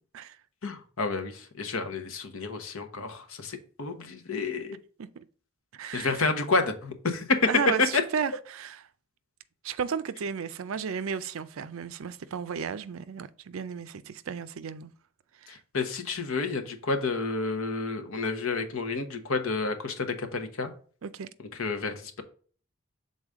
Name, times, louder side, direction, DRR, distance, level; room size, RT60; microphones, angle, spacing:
voice 1, 0.6-4.8 5.9-7.4 7.9-8.0 15.5-20.7 21.5-22.2, left 4 dB, 75° left, 1.0 m, -30 dB
voice 2, 5.7-6.2 7.5-8.8 9.6-14.9 15.4-15.6 21.0-21.3, right 6 dB, 70° right, 0.4 m, -34 dB
6.5 x 4.0 x 3.6 m
head